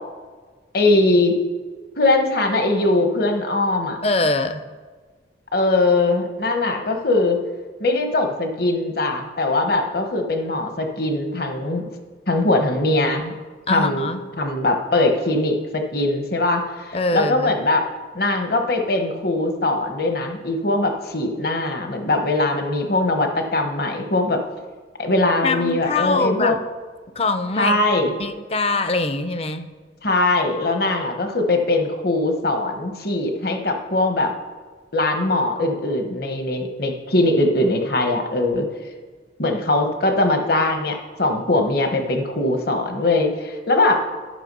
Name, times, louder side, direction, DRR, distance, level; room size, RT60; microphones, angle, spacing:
voice 1, 0.7-1.3 2.0-4.0 5.5-7.4 7.8-11.9 12.3-13.3 13.7-14.1 14.4-17.8 18.1-24.4 25.0-26.6 27.6-28.1 30.0-34.3 34.9-38.7 39.4-44.0, left 2 dB, 50° left, 5 dB, 1.0 m, -21 dB
voice 2, 4.0-4.6 13.7-14.2 16.9-17.5 25.4-26.6 27.2-27.8 28.2-29.7, left 3 dB, 30° left, 10 dB, 0.5 m, -23 dB
11.0 x 5.9 x 5.4 m, 1.4 s
head